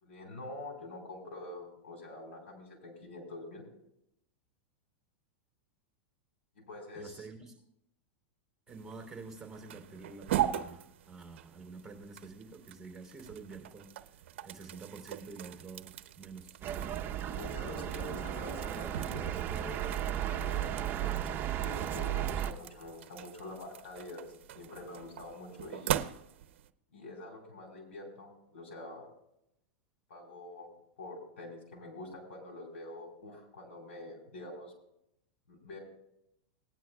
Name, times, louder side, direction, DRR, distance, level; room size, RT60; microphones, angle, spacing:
voice 1, 0.0-3.6 6.7-7.3 17.3-21.3 21.6-24.2 24.5-25.9 26.9-29.1 30.1-30.7 31.0-34.7 35.5-35.8, left 2 dB, 85° left, 1 dB, 4.6 m, -46 dB
voice 2, 6.9-7.6 8.7-13.9 14.4-16.6, right 4 dB, 5° right, 2 dB, 3.2 m, -48 dB
sound 1, 8.7-26.7, right 11 dB, 70° right, 0.7 m, -41 dB
sound 2, 16.6-22.5, right 11 dB, 35° right, 0.9 m, -35 dB
18.5 x 10.5 x 2.3 m, 0.79 s
hypercardioid pair, 120°, 7 cm